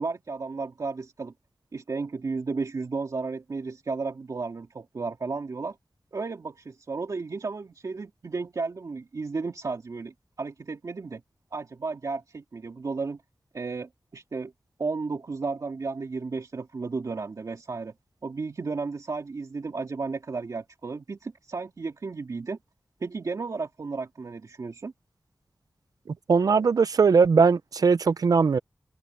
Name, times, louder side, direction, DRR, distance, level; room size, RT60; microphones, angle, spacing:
voice 1, 0.0-1.3 1.7-5.8 6.1-11.2 11.5-13.2 13.5-14.5 14.8-17.9 18.2-22.6 23.0-24.9 26.6-26.7, right 4 dB, 65° right, 2.5 m, -33 dB
voice 2, 26.3-28.6, right 5 dB, 80° right, 0.6 m, -20 dB
open air
wide cardioid pair, 75°, 6 cm